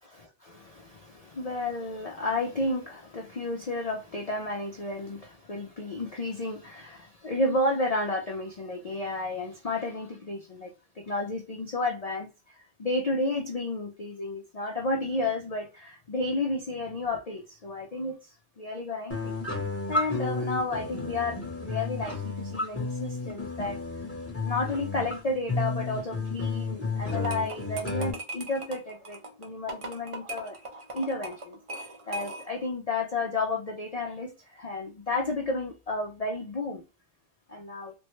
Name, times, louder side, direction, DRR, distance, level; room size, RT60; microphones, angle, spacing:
voice 1, 0.1-19.4 19.9-23.8 24.4-30.6 30.9-36.8 37.5-37.9, left 2 dB, 50° left, 0.4 m, -32 dB
sound 1, 19.1-28.1, left 3 dB, 15° left, 0.7 m, -32 dB
sound 2, 27.1-32.7, right 2 dB, 40° right, 0.5 m, -40 dB
3.4 x 2.1 x 3.0 m
omnidirectional pair, 1.2 m